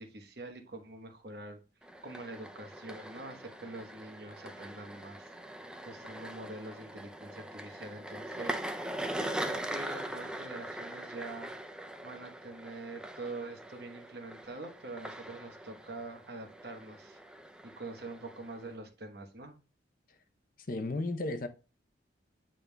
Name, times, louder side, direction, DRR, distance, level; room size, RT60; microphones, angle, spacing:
voice 1, 0.0-1.6 2.0-5.3 5.9-11.5 12.0-17.2 17.8-19.6, right 2 dB, 55° right, 1.1 m, -45 dB
sound 1, 1.8-18.8, right 1 dB, 5° right, 0.4 m, -42 dB
voice 2, 20.7-21.5, left 2 dB, 45° left, 0.6 m, -33 dB
8.9 x 5.3 x 2.2 m
head